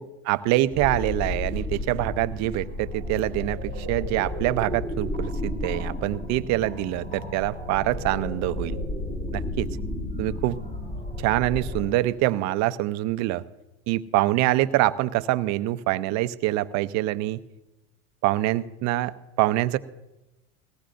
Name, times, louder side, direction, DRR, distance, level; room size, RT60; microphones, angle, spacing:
voice 1, 0.2-8.8 9.3-9.7 10.2-10.6 11.2-13.4 13.9-17.4 18.2-19.8, right 16 dB, 55° right, 14 dB, 0.6 m, -25 dB
sound 1, 0.7-11.8, left 1 dB, 20° left, 5.3 m, -32 dB
19.5 x 15.5 x 2.6 m, 1.0 s
supercardioid pair, 115°, 34 cm